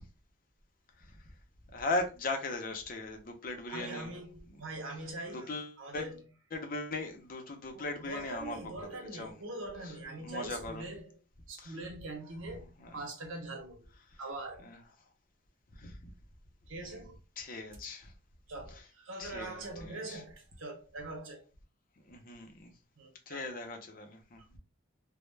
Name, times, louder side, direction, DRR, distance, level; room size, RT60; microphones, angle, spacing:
voice 1, 1.7-4.1 5.3-6.1 6.5-8.6 8.9-9.3 9.8-9.9 10.2-10.8 11.6-11.7 12.8-13.0 14.6-14.8 15.8-16.1 17.4-18.1 19.2-20.2 22.1-22.7 23.3-24.4, left 2 dB, 45° left, 0.5 m, -38 dB
voice 2, 3.7-6.2 7.7-11.2 11.5-13.9 14.2-14.7 16.7-17.2 18.5-21.4 23.0-23.5 24.5-24.6, right 2 dB, 85° right, 0.7 m, -43 dB
2.1 x 2.0 x 3.1 m
head